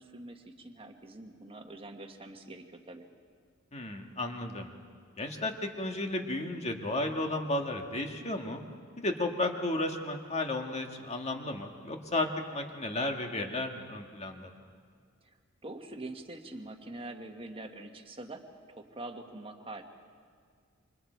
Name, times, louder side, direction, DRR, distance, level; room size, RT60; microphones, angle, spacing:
voice 1, 0.0-3.1 15.6-19.8, right 2 dB, 25° right, 4 dB, 1.5 m, -44 dB
voice 2, 3.7-4.7 5.2-8.6 9.0-14.5, left 2 dB, 30° left, 3 dB, 1.8 m, -33 dB
28.0 x 26.0 x 4.6 m, 2.1 s
head